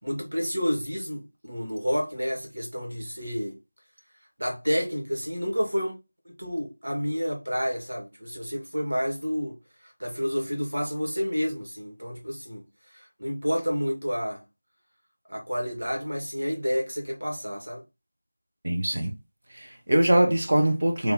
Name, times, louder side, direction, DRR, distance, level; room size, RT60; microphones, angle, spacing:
voice 1, 0.0-3.5 4.4-6.0 6.3-9.5 9.8-12.6 12.9-14.4 15.3-17.8, equal, 70° right, 2.1 m, -29 dB
voice 2, 18.6-19.1 19.5-21.1, right 1 dB, 50° right, 1.3 m, -23 dB
3.6 x 2.9 x 4.0 m
figure-of-eight pair, 170°, 0 cm